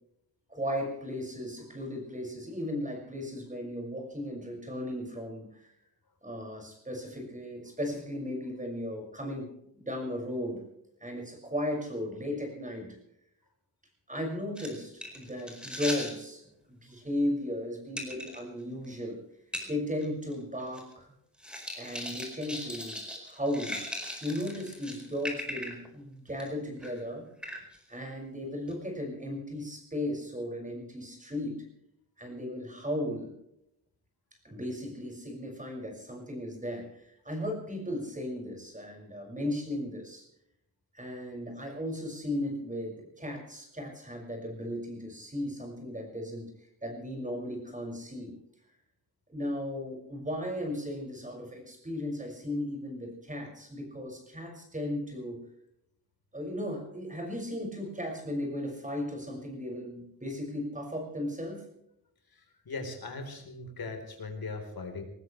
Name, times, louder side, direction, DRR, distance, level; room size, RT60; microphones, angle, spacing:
voice 1, 0.5-5.7 6.2-9.5 9.7-10.6 11.0-12.9 14.1-16.4 16.7-19.2 19.7-21.1 21.7-23.8 24.2-27.2 27.9-31.6 32.2-33.3 34.4-40.2 40.9-46.5 46.8-48.3 49.3-55.4 56.3-61.6, left 1 dB, 20° right, 1 dB, 6.2 m, -36 dB
sound 1, 14.6-16.2 18.0-18.4 18.8-18.9 19.5-19.7 20.0-20.1 20.3-20.9 21.4-25.9 26.3-26.5 26.8-27.0 27.4-27.8 28.7-28.8, equal, ahead, 4.7 m, -39 dB
voice 2, 62.7-65.0, left 3 dB, 70° left, 4 dB, 4.1 m, -39 dB
22.5 x 19.5 x 3.3 m, 0.77 s
wide cardioid pair, 150°, 37 cm